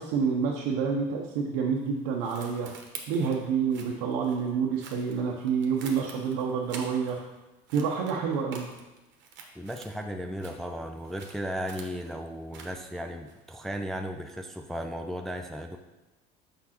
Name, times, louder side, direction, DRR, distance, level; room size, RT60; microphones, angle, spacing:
voice 1, 0.0-2.7 3.1-7.2 7.7-8.7, right 6 dB, 80° right, -1 dB, 0.7 m, -28 dB
sound 1, 1.8-7.4 7.7-10.1 10.3-13.7, right 5 dB, 60° right, 1.0 m, -48 dB
voice 2, 9.6-15.8, equal, ahead, 4 dB, 0.4 m, -35 dB
6.1 x 5.4 x 2.9 m, 1.1 s
supercardioid pair, 95°, 21 cm